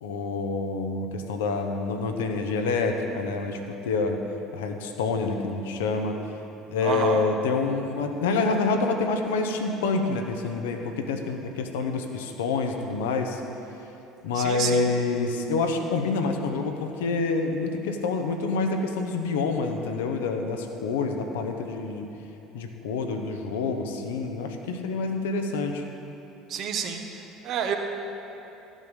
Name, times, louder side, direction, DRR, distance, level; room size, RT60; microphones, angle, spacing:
voice 1, 0.0-4.2 4.5-6.2 6.7-13.4 14.2-22.1 22.5-25.8, left 4 dB, 70° left, 5 dB, 0.9 m, -27 dB
voice 2, 6.8-7.3 14.3-14.8 26.5-27.8, right 7 dB, 50° right, 4 dB, 1.1 m, -29 dB
13.5 x 7.4 x 5.3 m, 3.0 s
figure-of-eight pair, 60°, 0 cm